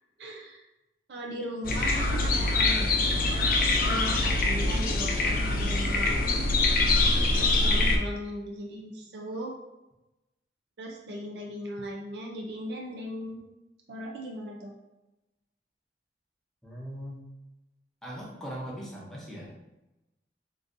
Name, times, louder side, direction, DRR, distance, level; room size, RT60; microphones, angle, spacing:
voice 1, 0.2-0.6 1.1-3.3 3.8-6.5 7.3-9.6 10.8-13.5 13.9-14.8, equal, 70° right, 0 dB, 0.5 m, -38 dB
sound 1, 1.6-8.0, left 2 dB, 50° left, 0.4 m, -24 dB
voice 2, 16.6-17.2 18.0-19.5, equal, 5° left, -5 dB, 0.7 m, -39 dB
3.7 x 2.6 x 2.5 m, 0.97 s
head